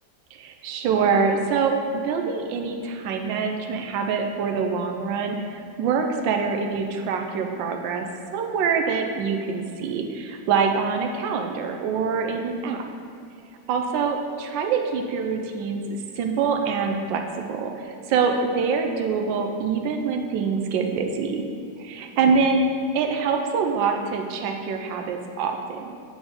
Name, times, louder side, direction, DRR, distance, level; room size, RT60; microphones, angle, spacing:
voice 1, 0.3-8.0 8.3-12.8 13.7-15.8 16.2-17.2 17.5-21.4 21.8-22.7 22.9-26.0, right 5 dB, 85° right, 3 dB, 1.3 m, -25 dB
8.5 x 4.1 x 5.1 m, 2.4 s
omnidirectional pair, 2.0 m